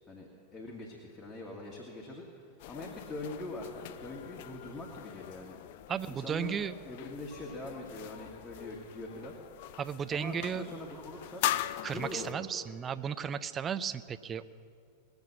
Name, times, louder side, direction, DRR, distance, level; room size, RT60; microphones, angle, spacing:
voice 1, 0.1-5.6 6.1-6.6 6.8-9.3 10.1-11.5 11.9-12.5, left 2 dB, 10° left, -4 dB, 1.9 m, -43 dB
sound 1, 2.6-12.3, left 13 dB, 50° left, 0.4 m, -41 dB
voice 2, 5.9-6.7 9.8-10.7 11.8-14.5, right 7 dB, 25° right, 11 dB, 0.5 m, -34 dB
20.0 x 7.1 x 7.5 m, 2.4 s
figure-of-eight pair, 90°, 0 cm